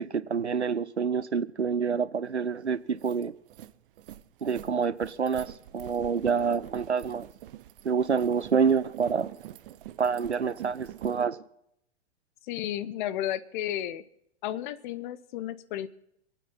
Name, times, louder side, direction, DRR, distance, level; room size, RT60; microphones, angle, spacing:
voice 1, 0.0-3.3 4.4-7.3 7.8-9.3 10.0-11.4, right 6 dB, 90° right, 0.7 m, -27 dB
sound 1, 2.4-2.5 2.8-11.2, right 12 dB, 55° right, 0.8 m, -46 dB
voice 2, 12.4-14.0 14.4-15.9, left 12 dB, 45° left, 0.9 m, -33 dB
26.5 x 9.2 x 4.2 m
figure-of-eight pair, 100°, 33 cm